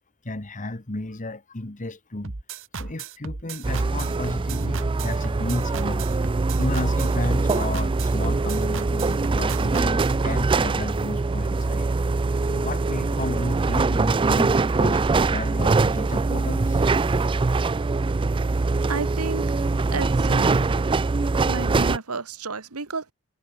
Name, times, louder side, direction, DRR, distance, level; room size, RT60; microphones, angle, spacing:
voice 1, 0.2-2.3 2.7-6.1 6.6-16.8, left 2 dB, 35° left, 1.5 m, -33 dB
sound 1, 2.2-10.2, right 4 dB, 60° right, 1.4 m, -35 dB
sound 2, 3.6-22.0, right 3 dB, 20° right, 0.4 m, -23 dB
voice 2, 18.9-19.4 19.9-20.7 21.5-23.1, right 4 dB, 75° right, 1.7 m, -31 dB
head